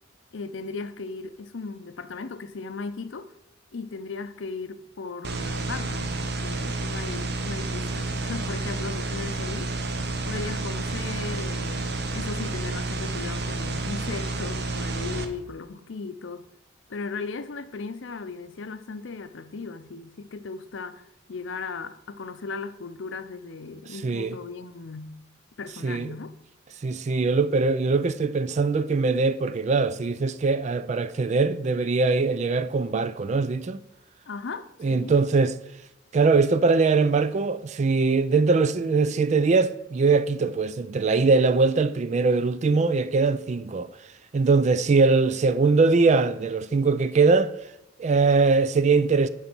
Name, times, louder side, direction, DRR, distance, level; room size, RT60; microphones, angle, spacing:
voice 1, 0.3-3.3 3.7-9.8 10.2-16.5 16.9-25.2 25.6-26.3 34.3-35.1, left 4 dB, 70° left, 0.6 m, -37 dB
sound 1, 5.2-15.3, right 2 dB, 60° right, 0.9 m, -30 dB
voice 2, 24.0-24.4 25.8-26.2 26.8-33.8 34.8-35.5 36.1-43.9 44.3-47.5 48.0-49.3, right 4 dB, 35° right, 0.3 m, -22 dB
9.6 x 4.0 x 6.0 m
head